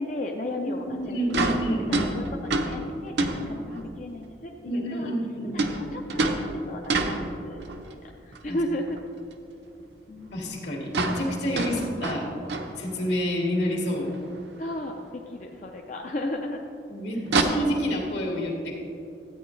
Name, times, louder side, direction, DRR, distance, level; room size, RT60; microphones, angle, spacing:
voice 1, 0.0-1.3 1.9-5.1 5.5-9.0 10.1-10.5 11.6-11.9 14.6-16.6, left 1 dB, 40° left, 1 dB, 0.5 m, -35 dB
voice 2, 0.6-2.3 4.6-5.7 8.5-8.6 10.3-12.3 12.8-14.1 16.9-18.8, equal, 75° left, -2 dB, 2.0 m, -29 dB
sound 1, 1.0-1.1 1.3-4.0 5.6-7.9 8.3-9.0 9.3-9.4 9.8-9.9 10.2-10.3 10.4-10.6 10.8-13.3 13.6-13.7 14.1-14.2 15.3-15.4 17.2-17.4, right 2 dB, 70° right, 0.7 m, -28 dB
13.0 x 8.9 x 3.2 m, 2.6 s
head